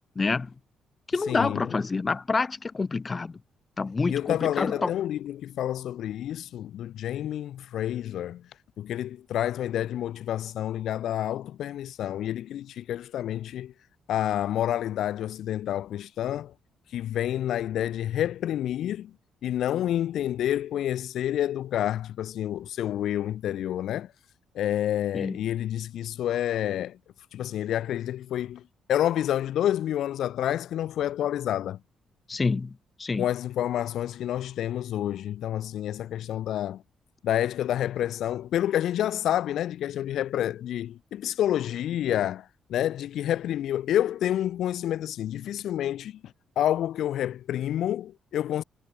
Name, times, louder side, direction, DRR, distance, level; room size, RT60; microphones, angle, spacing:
voice 1, 0.2-0.5 1.1-3.4 3.8-4.9 25.1-25.4 32.3-33.2, left 4 dB, 20° left, 2.8 m, -27 dB
voice 2, 1.3-1.7 4.1-8.4 8.8-13.7 14.1-16.5 16.9-19.1 19.4-24.1 24.6-27.0 27.3-28.6 28.9-31.8 33.2-36.8 37.2-46.2 46.6-48.6, left 11 dB, 65° left, 1.7 m, -28 dB
cardioid pair, 175°, 0 cm